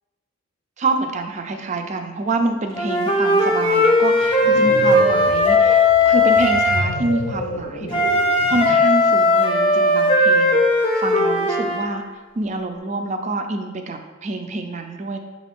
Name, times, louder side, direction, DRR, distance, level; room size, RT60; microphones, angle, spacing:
voice 1, 0.8-8.0 8.3-12.0 12.4-15.2, right 2 dB, 35° right, 5 dB, 0.3 m, -26 dB
Wind instrument woodwind instrument, 2.7-6.9 7.9-11.8, left 2 dB, 25° left, 0.5 m, -17 dB
sound 1, 4.2-9.0, left 1 dB, 80° left, 0.6 m, -31 dB
6.1 x 2.4 x 3.5 m, 1.3 s
head